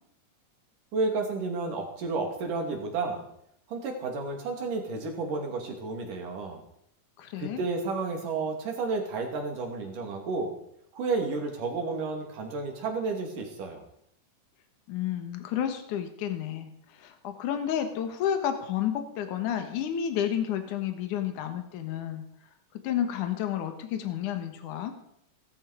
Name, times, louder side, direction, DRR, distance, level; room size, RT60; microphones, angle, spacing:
voice 1, 0.9-3.3 3.7-6.6 7.4-10.5 10.9-13.8, right 3 dB, 85° right, 2 dB, 4.3 m, -31 dB
voice 2, 7.2-7.6 14.9-22.2 22.8-24.9, left 10 dB, 75° left, 6 dB, 2.8 m, -31 dB
17.0 x 14.0 x 5.0 m, 0.71 s
omnidirectional pair, 3.6 m